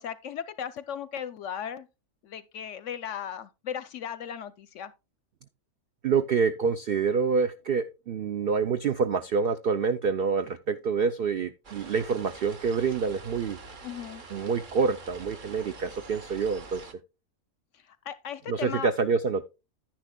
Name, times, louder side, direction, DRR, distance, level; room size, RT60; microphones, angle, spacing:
voice 1, 0.0-1.9 2.2-4.9 13.8-14.2 17.7-18.9, left 8 dB, 65° left, 0.8 m, -37 dB
voice 2, 6.0-13.6 14.3-16.8 18.5-19.4, right 5 dB, 70° right, 0.5 m, -27 dB
sound 1, 11.6-16.9, right 3 dB, 40° right, 0.9 m, -46 dB
10.5 x 10.0 x 2.2 m
omnidirectional pair, 1.6 m